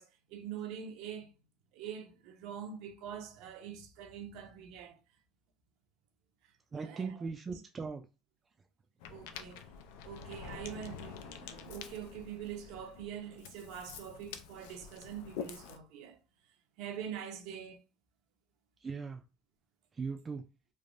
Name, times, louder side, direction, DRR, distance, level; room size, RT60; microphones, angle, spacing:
voice 1, 0.0-1.3 1.7-5.0 6.8-7.6 9.1-9.7 10.0-16.2 16.8-17.8, right 8 dB, 70° right, 0.6 m, -44 dB
voice 2, 6.7-8.0 18.8-19.2 20.0-20.4, right 5 dB, 20° right, 0.3 m, -39 dB
Ocean, 9.0-15.8, left 7 dB, 85° left, 0.4 m, -47 dB
3.2 x 2.1 x 2.5 m
cardioid pair, 135°, 0 cm